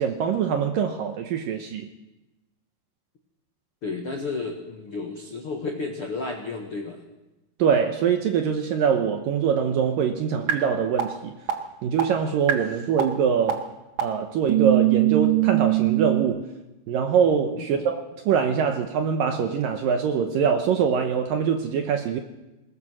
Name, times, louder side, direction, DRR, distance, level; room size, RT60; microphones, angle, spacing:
voice 1, 0.0-1.9 7.6-11.3 11.8-13.7 14.0-16.5 16.9-22.2, right 7 dB, 85° right, 5 dB, 2.0 m, -23 dB
voice 2, 3.8-7.0 17.6-17.8, left 3 dB, 80° left, 2 dB, 1.2 m, -32 dB
sound 1, 10.5-10.6 11.0-11.1 11.5-11.6 12.0-12.1 12.5-12.6 13.0-13.1 13.5-13.6 14.0-14.1 14.5-16.2, right 17 dB, 55° right, 1.3 m, -20 dB
21.0 x 20.0 x 6.3 m, 1.0 s
omnidirectional pair, 5.5 m